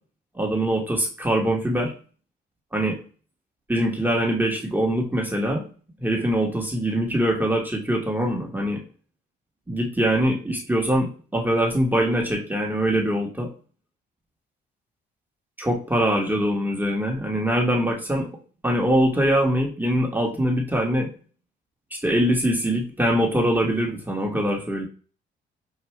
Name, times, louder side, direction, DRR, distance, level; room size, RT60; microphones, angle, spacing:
voice 1, 0.3-1.9 2.7-3.0 3.7-5.6 6.0-8.8 9.7-13.5 15.6-18.3 18.6-21.1 22.0-24.9, equal, 10° right, -1 dB, 1.1 m, -23 dB
5.7 x 2.4 x 3.1 m, 0.38 s
cardioid pair, 90°, 20 cm